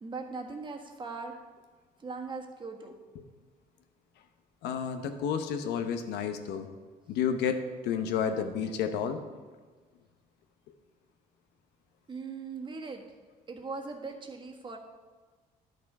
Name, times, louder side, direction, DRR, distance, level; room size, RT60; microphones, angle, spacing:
voice 1, 0.0-1.3 2.0-2.9 12.1-13.0 13.5-14.8, right 4 dB, 30° right, 2 dB, 1.4 m, -39 dB
voice 2, 4.6-6.7 7.1-9.2, left 7 dB, 85° left, 7 dB, 1.0 m, -31 dB
11.0 x 6.6 x 4.8 m, 1.4 s
cardioid pair, 110°, 17 cm